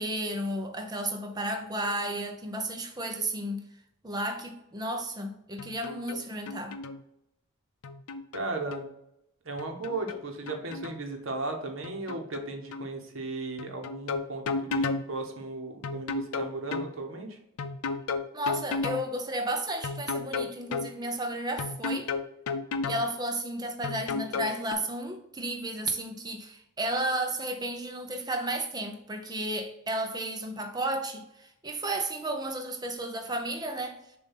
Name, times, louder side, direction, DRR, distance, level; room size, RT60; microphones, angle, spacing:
voice 1, 0.0-3.6 4.0-6.8 18.3-22.1 22.9-34.0, right 1 dB, 20° right, 0.7 m, -33 dB
sound 1, 5.6-6.2 6.5-7.0 7.8-8.9 9.6-11.0 11.8-12.5 12.7-12.9 13.6-15.0 15.8-16.9 17.6-19.0 19.8-20.9 21.6-23.0 23.8-24.7, left 4 dB, 90° left, 0.5 m, -32 dB
voice 2, 8.3-8.9 9.4-17.4, right 3 dB, 65° right, 1.1 m, -36 dB
7.0 x 2.6 x 5.6 m
head